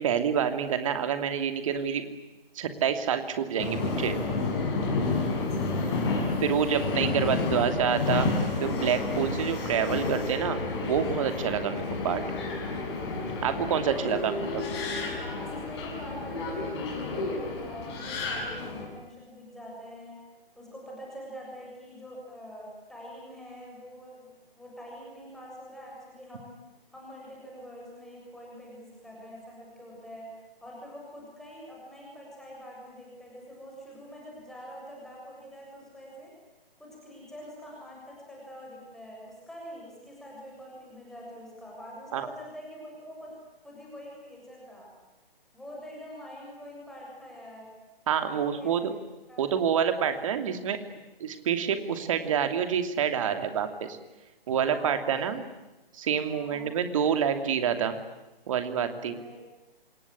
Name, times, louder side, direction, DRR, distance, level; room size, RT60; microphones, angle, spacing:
voice 1, 0.0-2.0 2.5-4.2 6.4-8.3 8.6-12.2 13.4-14.7 42.1-42.3 48.1-48.9 49.4-50.8 51.2-54.0 54.5-55.4 55.9-58.0 58.5-59.2, right 8 dB, 35° right, 9 dB, 2.9 m, -27 dB
Subway metro underground, 3.6-18.8, left 3 dB, 30° left, 6.4 m, -30 dB
voice 2, 13.8-14.2 15.2-20.2 20.6-26.6 26.9-30.3 30.6-36.3 36.8-43.4 43.6-44.9 45.5-47.7 48.3-48.7 49.3-49.4 54.5-55.3 56.3-56.7 59.1-59.4, equal, ahead, -4 dB, 7.0 m, -45 dB
27.0 x 21.5 x 9.9 m, 1.0 s
figure-of-eight pair, 135°, 29 cm